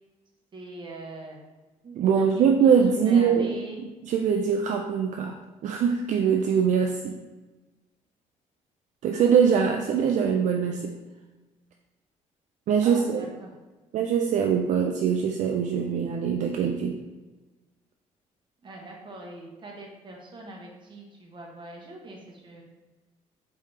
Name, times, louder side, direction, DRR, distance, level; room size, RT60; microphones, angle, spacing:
voice 1, 0.5-1.4 1.8-2.8 3.0-3.8 12.8-13.5 18.6-22.6, right 2 dB, 35° right, -1 dB, 1.1 m, -42 dB
voice 2, 2.0-3.6 4.0-7.2 9.0-10.9 12.7-13.3 13.9-17.0, right 7 dB, 65° right, 3 dB, 0.4 m, -23 dB
4.9 x 3.4 x 2.8 m, 1.2 s
cardioid pair, 105°, 14 cm